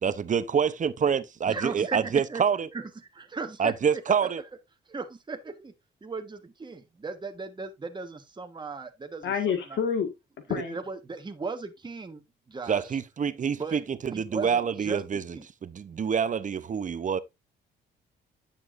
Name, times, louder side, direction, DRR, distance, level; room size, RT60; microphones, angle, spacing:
voice 1, 0.0-2.7 3.6-4.4 12.7-17.2, right 7 dB, 40° right, 0.8 m, -27 dB
voice 2, 1.5-2.4 2.7-2.9 3.2-4.1 4.9-5.7 6.0-9.3 9.7-9.8 10.5-12.2 12.5-12.8 13.6-13.8 14.1-15.5, right 4 dB, 25° right, 1.4 m, -37 dB
voice 3, 9.2-10.1 10.5-10.8, left 7 dB, 70° left, 1.8 m, -28 dB
9.9 x 7.1 x 2.6 m
cardioid pair, 90°, 20 cm